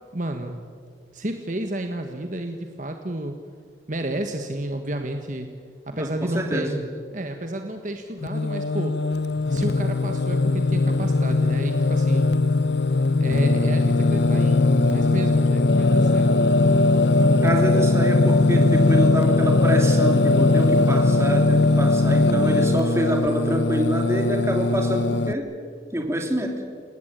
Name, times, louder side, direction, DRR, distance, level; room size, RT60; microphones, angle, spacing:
voice 1, 0.1-0.6 1.1-3.4 3.9-5.5 5.8-6.8 7.1-9.0 9.5-12.4 13.2-16.5, right 1 dB, 45° right, 5 dB, 1.5 m, -31 dB
voice 2, 6.0-6.8 17.4-25.5 25.9-26.6, equal, 15° right, 2 dB, 3.2 m, -26 dB
Singing, 8.2-25.3, left 2 dB, 70° left, 0.8 m, -20 dB
29.0 x 18.0 x 9.2 m, 2.1 s
head